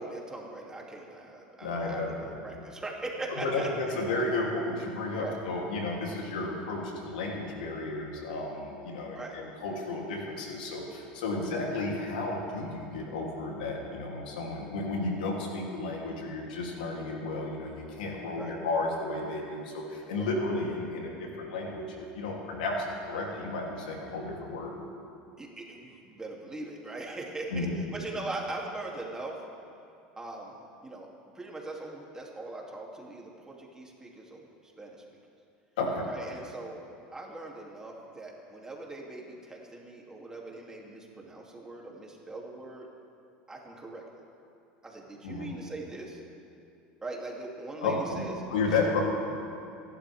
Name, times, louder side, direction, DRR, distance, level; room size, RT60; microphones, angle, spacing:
voice 1, 0.0-4.0 5.2-5.4 9.1-9.4 11.4-11.5 18.4-18.6 20.2-20.3 25.4-29.4 30.2-31.1 31.3-35.0 36.1-36.8 37.1-42.9 43.5-44.0 44.8-46.2 47.0-48.3, right 2 dB, 15° right, -2 dB, 3.0 m, -41 dB
voice 2, 1.6-2.3 3.4-24.7 27.5-27.8 35.8-36.1 45.2-45.5 47.8-48.2 48.5-49.0, left 3 dB, 85° left, -2 dB, 3.3 m, -32 dB
27.5 x 12.0 x 3.7 m, 2.7 s
supercardioid pair, 100°, 4 cm